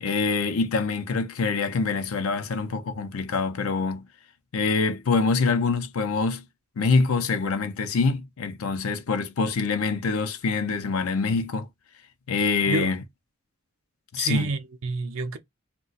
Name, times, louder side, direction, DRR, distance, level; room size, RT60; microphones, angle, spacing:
voice 1, 0.0-4.1 4.5-6.4 6.8-11.7 12.3-13.0 14.1-14.5, left 4 dB, 80° left, 0.6 m, -25 dB
voice 2, 14.2-15.4, right 3 dB, 70° right, 0.5 m, -28 dB
2.3 x 2.2 x 3.9 m
head